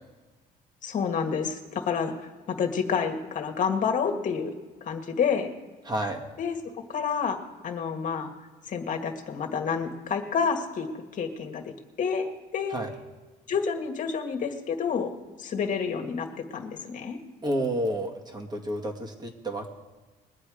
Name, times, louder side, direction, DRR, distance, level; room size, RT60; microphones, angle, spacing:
voice 1, 0.8-2.1 2.5-4.5 4.8-5.5 6.4-6.6 6.9-8.3 8.7-10.9 11.1-11.7 12.0-12.8 13.5-15.1 15.4-17.2, left 6 dB, 50° left, 3 dB, 1.8 m, -29 dB
voice 2, 5.8-6.2 12.7-12.9 17.4-19.7, right 1 dB, 25° right, 2 dB, 2.1 m, -30 dB
21.0 x 8.8 x 5.0 m, 1.3 s
cardioid pair, 110°, 17 cm